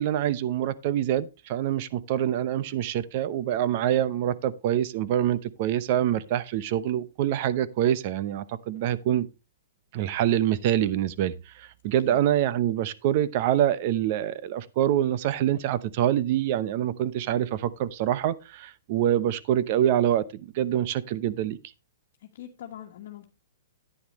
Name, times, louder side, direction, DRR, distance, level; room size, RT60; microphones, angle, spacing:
voice 1, 0.0-9.3 9.9-21.6, right 11 dB, 45° right, 0.8 m, -25 dB
voice 2, 22.2-23.3, left 11 dB, 60° left, 1.5 m, -42 dB
10.5 x 9.4 x 3.1 m
hypercardioid pair, 150°, 0 cm